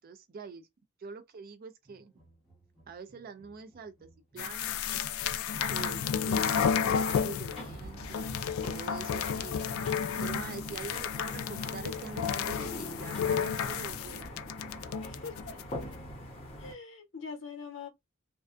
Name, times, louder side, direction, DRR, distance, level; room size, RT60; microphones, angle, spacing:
voice 1, 0.0-0.7 1.0-2.1 2.9-5.0 5.7-8.4 8.6-14.3, right 5 dB, 45° right, 0.4 m, -45 dB
sound 1, 1.8-6.1 6.7-11.0, right 2 dB, 5° right, 0.9 m, -62 dB
sound 2, 4.4-7.6 8.0-15.6, left 7 dB, 85° left, 0.3 m, -32 dB
sound 3, 5.5-16.7, left 1 dB, 30° left, 0.8 m, -44 dB
voice 2, 15.1-15.6 16.6-17.9, left 5 dB, 65° left, 0.8 m, -43 dB
2.5 x 2.2 x 2.4 m
head